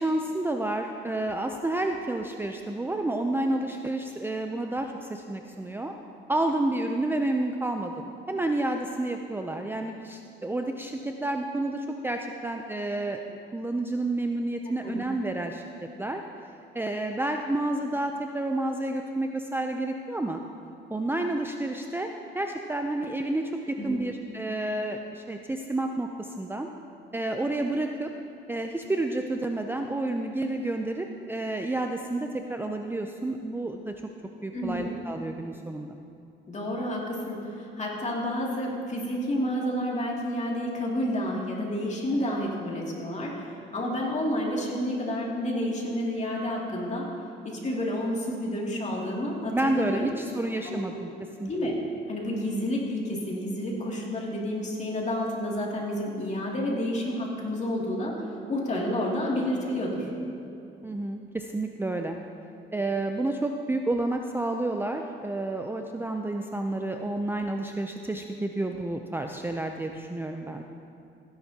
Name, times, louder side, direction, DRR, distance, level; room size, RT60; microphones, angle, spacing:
voice 1, 0.0-5.9 6.3-16.2 16.7-20.4 20.9-22.1 22.3-26.7 27.1-28.1 28.5-33.9 34.4-36.0 49.5-51.1 51.4-51.7 60.8-62.2 62.7-70.6, right 2 dB, 10° right, 4 dB, 0.5 m, -30 dB
voice 2, 14.7-15.0 23.8-24.0 34.5-34.9 36.5-47.1 47.4-50.1 50.6-50.9 51.4-51.7 52.1-58.2 58.5-60.1, left 1 dB, 35° left, -3 dB, 2.6 m, -30 dB
16.0 x 10.5 x 2.9 m, 2.7 s
cardioid pair, 90°, 20 cm